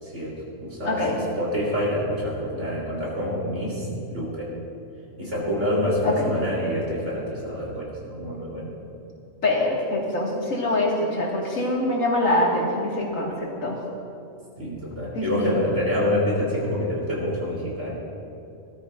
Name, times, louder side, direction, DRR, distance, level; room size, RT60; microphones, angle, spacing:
voice 1, 0.0-4.5 5.2-8.7 14.6-17.9, left 1 dB, 65° right, -5 dB, 3.8 m, -27 dB
voice 2, 0.8-1.2 6.0-6.3 9.4-13.8 15.1-15.6, left 1 dB, 85° left, -3 dB, 2.4 m, -24 dB
18.5 x 13.0 x 2.6 m, 2.7 s
omnidirectional pair, 1.3 m